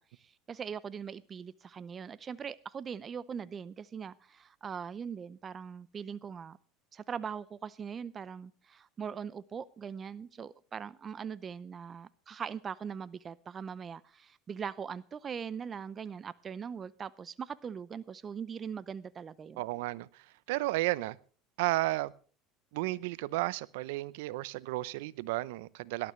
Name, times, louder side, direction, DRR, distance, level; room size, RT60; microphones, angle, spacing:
voice 1, 0.0-6.6 6.9-19.6, right 7 dB, 30° right, 0.6 m, -41 dB
voice 2, 19.6-21.2 21.6-22.1 22.7-26.1, right 19 dB, 80° right, 0.7 m, -33 dB
18.0 x 12.0 x 3.2 m
supercardioid pair, 105°, 0 cm